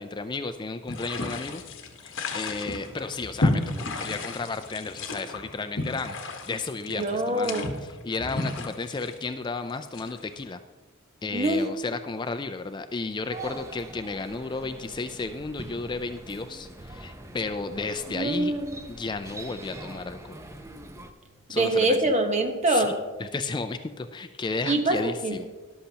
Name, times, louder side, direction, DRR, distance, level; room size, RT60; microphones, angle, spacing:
voice 1, 0.0-1.6 2.0-6.2 6.5-7.7 8.0-10.6 11.2-18.5 18.9-20.4 21.5-22.0 22.7-22.9 23.2-25.5, left 3 dB, 20° left, 0.3 m, -33 dB
sound 1, 0.9-10.4, left 2 dB, 60° left, 1.1 m, -32 dB
voice 2, 6.9-7.7 11.3-11.7 18.1-18.8 21.5-23.0 24.6-25.4, right 2 dB, 35° right, 1.1 m, -25 dB
sound 2, 13.3-21.1, right 1 dB, 15° right, 0.6 m, -43 dB
13.5 x 11.5 x 2.9 m
head